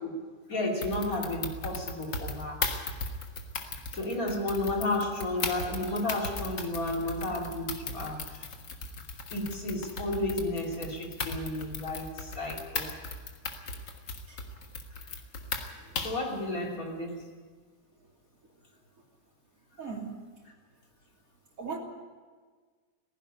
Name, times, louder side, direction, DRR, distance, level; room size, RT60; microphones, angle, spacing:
voice 1, 0.5-2.7 3.9-8.4 9.3-13.0 16.0-17.3, left 2 dB, 55° left, 0 dB, 3.6 m, -32 dB
sound 1, 0.8-16.3, left 3 dB, 85° left, 2.3 m, -37 dB
voice 2, 19.8-20.2 21.6-21.8, right 5 dB, 50° right, 0 dB, 3.3 m, -37 dB
17.0 x 15.5 x 9.8 m, 1.5 s
omnidirectional pair, 1.8 m